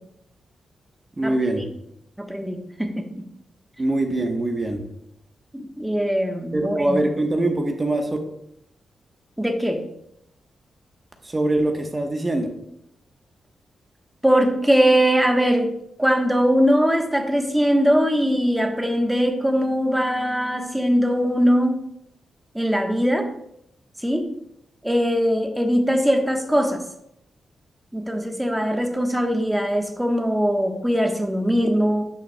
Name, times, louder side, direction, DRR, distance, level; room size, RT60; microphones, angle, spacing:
voice 1, 1.2-1.6 3.8-4.8 6.5-8.1 11.2-12.5, right 2 dB, 30° right, 3 dB, 1.1 m, -23 dB
voice 2, 2.2-3.0 5.5-7.0 9.4-9.8 14.2-15.7 16.0-21.8 22.5-23.3 24.0-24.3 24.8-26.8 27.9-32.0, equal, 5° right, 3 dB, 1.1 m, -21 dB
9.0 x 5.8 x 2.3 m, 0.77 s
cardioid pair, 55°, 0 cm